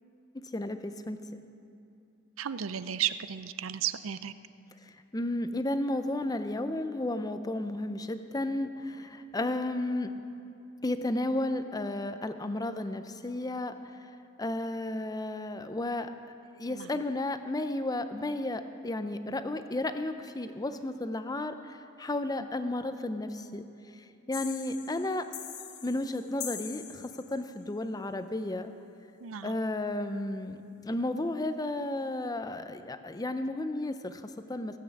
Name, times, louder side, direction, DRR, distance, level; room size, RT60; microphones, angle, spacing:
voice 1, 0.5-1.2 5.1-10.1 10.8-13.7 14.4-16.1 16.6-23.7 24.3-25.3 25.8-28.7 29.4-34.8, left 1 dB, 20° left, 9 dB, 0.6 m, -33 dB
voice 2, 2.4-4.3 16.6-16.9 29.2-29.6, right 10 dB, 85° right, 13 dB, 0.5 m, -34 dB
sound 1, 24.3-27.6, left 10 dB, 60° left, 0.9 m, -43 dB
16.5 x 8.6 x 7.1 m, 2.6 s
head